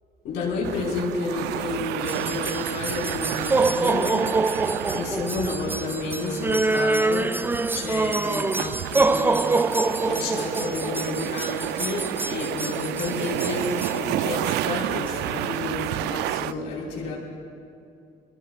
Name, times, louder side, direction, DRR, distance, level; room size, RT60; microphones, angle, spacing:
voice 1, 0.2-4.5 4.9-7.4 7.7-9.5 10.0-17.1, left 3 dB, 85° left, -3 dB, 5.1 m, -31 dB
sound 1, 0.6-16.5, right 14 dB, 85° right, 0.4 m, -31 dB
sound 2, 2.0-14.0, right 3 dB, 10° right, 0.4 m, -25 dB
26.5 x 22.0 x 2.5 m, 2.5 s
cardioid pair, 110°, 17 cm